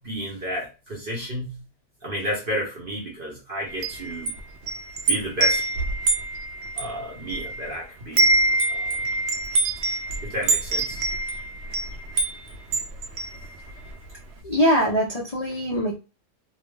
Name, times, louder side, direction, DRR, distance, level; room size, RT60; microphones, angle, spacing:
voice 1, 0.0-1.6 2.0-4.3 5.1-5.6 6.8-8.3 8.7-9.1 10.2-11.0 11.9-12.0 13.0-13.1, equal, 50° right, 0.7 m, -32 dB
Wind chime, 3.7-7.7 8.0-13.9, right 2 dB, 90° right, 0.6 m, -25 dB
voice 2, 14.4-16.0, equal, 65° left, 0.3 m, -22 dB
2.8 x 2.0 x 3.2 m
omnidirectional pair, 1.8 m